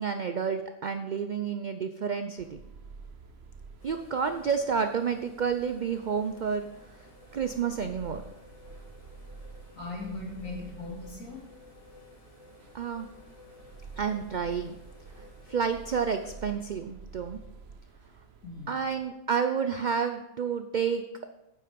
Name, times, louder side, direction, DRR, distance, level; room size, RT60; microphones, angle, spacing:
voice 1, 0.0-2.6 3.8-6.6 7.3-8.2 12.7-13.1 14.0-14.7 15.5-17.4 18.7-21.0, right 6 dB, 70° right, 8 dB, 0.4 m, -30 dB
sound 1, 2.4-19.1, right 4 dB, 55° right, 1.0 m, -50 dB
sound 2, 3.8-16.5, left 3 dB, 25° left, 1.4 m, -54 dB
voice 2, 9.7-11.4 18.4-18.8, left 3 dB, 65° left, -2 dB, 3.0 m, -39 dB
9.3 x 7.7 x 5.2 m, 0.93 s
omnidirectional pair, 1.5 m